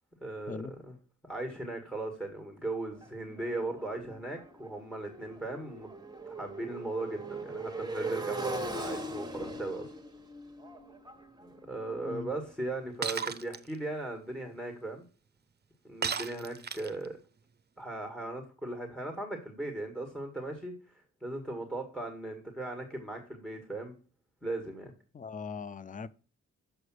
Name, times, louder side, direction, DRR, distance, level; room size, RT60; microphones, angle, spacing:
voice 1, 0.2-0.6 1.2-5.9 6.3-9.9 11.4-15.0 15.8-17.2 17.8-23.9 24.4-24.9, right 2 dB, ahead, 1.7 m, -38 dB
Motorcycle, 3.0-12.8, right 2 dB, 15° right, 1.3 m, -40 dB
Shatter, 13.0-13.6 16.0-17.1, right 6 dB, 35° right, 0.6 m, -34 dB
voice 2, 25.1-26.1, left 5 dB, 25° left, 0.5 m, -40 dB
7.1 x 4.9 x 6.2 m
cardioid pair, 85°, 30 cm